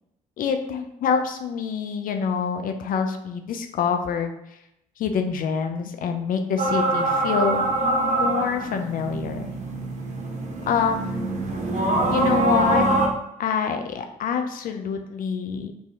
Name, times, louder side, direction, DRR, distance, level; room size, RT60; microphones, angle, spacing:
voice 1, 0.4-4.3 5.0-9.5 10.7-11.3 11.7-12.9 13.4-15.7, left 6 dB, 60° left, 5 dB, 0.5 m, -26 dB
sound 1, 6.6-13.1, right 2 dB, 45° right, 0.9 m, -24 dB
3.0 x 2.7 x 3.5 m, 0.84 s
hypercardioid pair, 55°, 16 cm